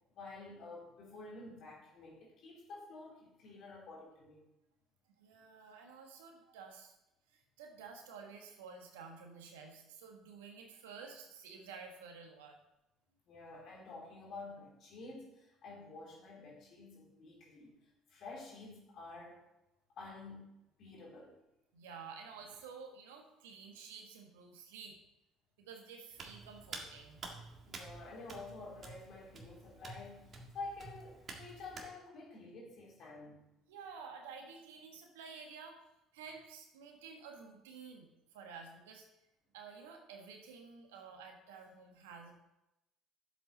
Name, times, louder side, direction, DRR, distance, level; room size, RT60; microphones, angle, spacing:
voice 1, 0.1-4.4 13.3-19.5 20.0-20.5 20.8-21.4 27.7-33.4, left 3 dB, 55° left, -2 dB, 3.6 m, -50 dB
voice 2, 5.2-7.0 7.3-12.6 21.7-25.0 25.6-27.3 33.7-35.8 36.1-39.1 39.5-42.3, right 5 dB, 75° right, 3 dB, 1.5 m, -51 dB
Hands, 26.1-31.9, right 3 dB, 40° right, 1.8 m, -50 dB
11.0 x 7.8 x 3.9 m, 0.90 s
hypercardioid pair, 55°, 0 cm